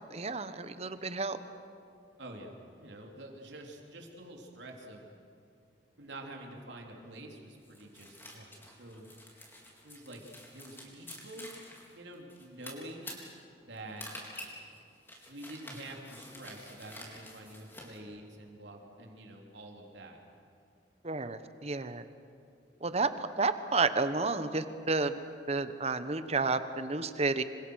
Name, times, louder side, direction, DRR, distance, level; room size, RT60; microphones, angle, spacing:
voice 1, 0.1-1.4 21.0-22.0 22.8-25.1 25.5-27.4, right 3 dB, 35° right, 11 dB, 1.1 m, -31 dB
voice 2, 2.2-2.5 2.8-5.0 6.0-9.1 9.8-10.2 10.5-11.5 11.9-13.2 13.7-14.1 15.3-20.2, right 1 dB, 90° right, 1 dB, 3.5 m, -47 dB
sound 1, 7.6-18.0, left 1 dB, 15° left, 4.0 m, -48 dB
27.0 x 25.5 x 6.4 m, 2.4 s
head